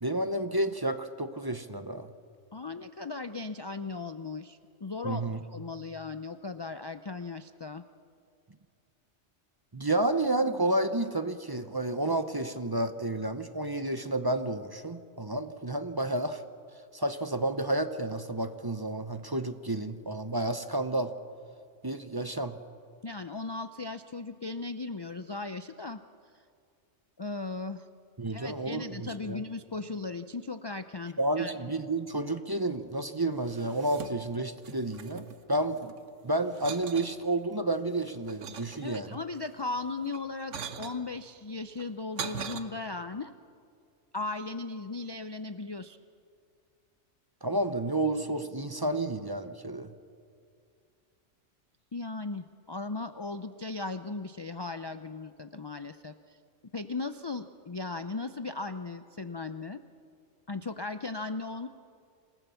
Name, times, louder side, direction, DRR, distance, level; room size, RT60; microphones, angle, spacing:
voice 1, 0.0-2.1 5.0-5.4 9.7-16.4 16.9-21.1 21.8-22.6 28.2-29.4 31.2-35.9 36.2-39.2 47.4-49.9, right 2 dB, 20° right, 9 dB, 0.7 m, -31 dB
voice 2, 2.5-5.2 5.5-7.8 23.0-26.0 27.2-27.8 28.3-31.5 38.8-43.3 44.1-46.0 51.9-56.4 56.7-59.8 60.5-61.7, left 3 dB, 40° left, 10 dB, 0.3 m, -37 dB
sound 1, 33.4-34.4 34.6-36.0 36.5-37.1 37.7-39.3 40.0-41.0 41.7-42.6, right 6 dB, 75° right, 1.4 m, -41 dB
27.5 x 18.0 x 7.0 m, 2.3 s
omnidirectional pair, 1.3 m